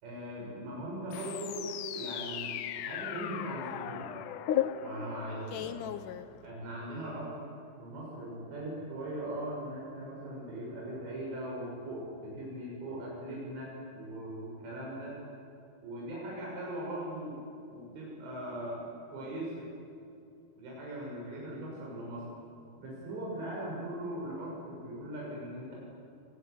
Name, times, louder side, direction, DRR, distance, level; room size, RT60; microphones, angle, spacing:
voice 1, 0.0-4.1 4.8-5.8 6.4-7.4 7.8-15.2 15.8-17.4 17.7-18.8 19.1-19.5 20.6-22.2 22.8-25.8, right 1 dB, 80° right, -5 dB, 9.1 m, -40 dB
sound 1, 1.1-6.8, left 10 dB, 80° left, 1.8 m, -36 dB
26.0 x 23.5 x 9.6 m, 2.6 s
omnidirectional pair, 5.1 m